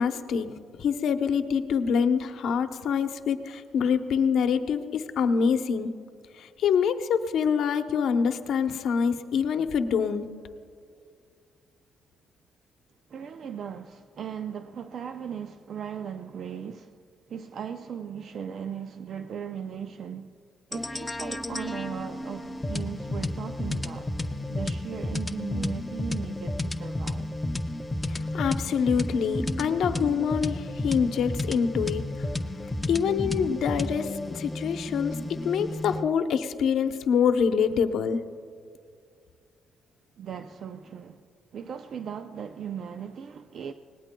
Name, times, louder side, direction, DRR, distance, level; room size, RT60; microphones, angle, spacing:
voice 1, 0.0-5.9 6.4-10.3 28.1-32.1 32.9-38.2, left 6 dB, 75° left, 0.8 m, -25 dB
voice 2, 13.1-17.0 17.3-20.4 20.7-24.1 24.5-27.3 40.2-41.2 41.5-43.7, right 7 dB, 60° right, 0.5 m, -37 dB
sound 1, 20.7-36.1, left 1 dB, 15° left, 0.6 m, -32 dB
25.0 x 19.0 x 2.3 m
cardioid pair, 90°, 0 cm